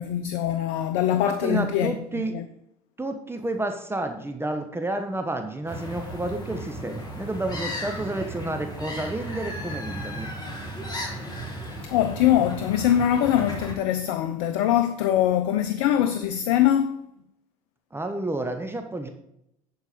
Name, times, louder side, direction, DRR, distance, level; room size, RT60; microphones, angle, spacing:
voice 1, 0.0-2.4 11.8-17.0, left 11 dB, 75° left, 0.6 m, -23 dB
voice 2, 1.3-2.3 3.0-10.3 17.9-19.1, right 2 dB, 15° right, 1.2 m, -30 dB
sound 1, 5.7-13.7, equal, 20° left, 3.3 m, -35 dB
11.0 x 4.7 x 5.1 m
hypercardioid pair, 70°, 19 cm